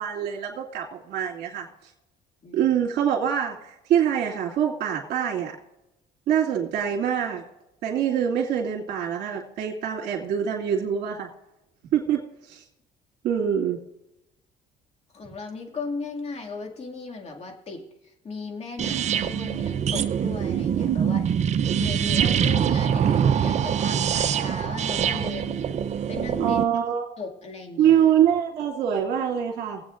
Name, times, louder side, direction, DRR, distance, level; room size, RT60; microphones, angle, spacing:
voice 1, 0.0-1.7 2.5-5.5 6.3-7.4 7.8-11.3 11.9-12.6 13.2-13.8 26.4-27.1 27.8-29.8, right 9 dB, 70° right, -2 dB, 2.3 m, -24 dB
voice 2, 2.4-2.7 15.1-21.3 21.8-25.8 26.1-26.6 27.2-28.0, left 4 dB, 40° left, 2 dB, 2.2 m, -37 dB
sound 1, 18.8-26.6, right 8 dB, 40° right, 0.6 m, -24 dB
23.0 x 8.3 x 2.5 m, 0.90 s
cardioid pair, 110°, 17 cm